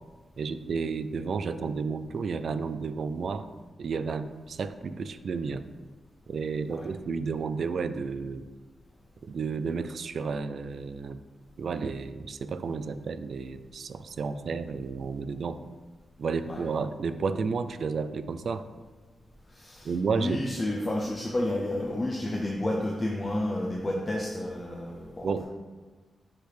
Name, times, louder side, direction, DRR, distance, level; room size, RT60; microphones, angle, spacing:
voice 1, 0.4-3.5 3.8-5.6 6.3-8.4 9.2-11.2 11.6-15.6 16.2-18.6 19.8-20.5 25.2-25.4, right 5 dB, 60° right, 12 dB, 0.3 m, -32 dB
voice 2, 19.5-25.4, left 1 dB, 20° left, -1 dB, 0.6 m, -31 dB
6.0 x 5.2 x 3.4 m, 1.3 s
wide cardioid pair, 130°, 0 cm